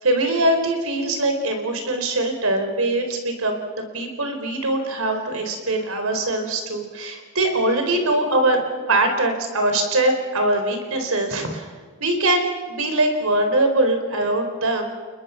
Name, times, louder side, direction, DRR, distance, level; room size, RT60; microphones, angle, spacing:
voice 1, 0.0-8.6 8.9-11.7 12.0-14.9, right 2 dB, 75° right, 5 dB, 4.4 m, -22 dB
29.0 x 21.5 x 5.9 m, 1.5 s
head